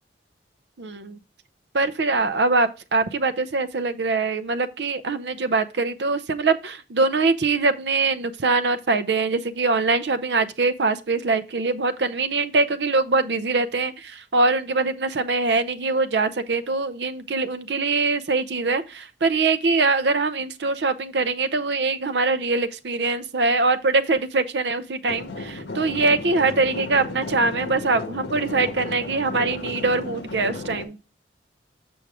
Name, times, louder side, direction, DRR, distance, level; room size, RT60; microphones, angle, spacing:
voice 1, 0.8-1.2 1.7-31.0, right 3 dB, 70° right, 0.6 m, -23 dB
sound 1, 25.1-30.8, left 2 dB, 80° left, 1.2 m, -34 dB
7.0 x 6.2 x 3.6 m
head